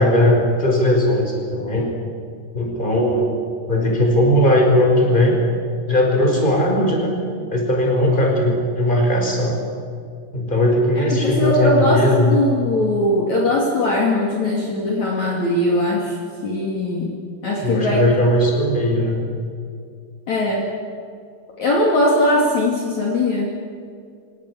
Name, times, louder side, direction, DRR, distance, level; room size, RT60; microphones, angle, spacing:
voice 1, 0.0-1.9 2.5-3.3 3.7-5.4 5.9-7.1 7.5-9.6 10.3-12.4 17.6-19.2, left 1 dB, 10° left, 0 dB, 5.2 m, -18 dB
voice 2, 11.0-16.2 16.4-18.0 20.3-20.7 21.6-23.5, left 1 dB, 50° left, -1 dB, 3.7 m, -20 dB
26.5 x 18.0 x 9.9 m, 2.3 s
omnidirectional pair, 4.8 m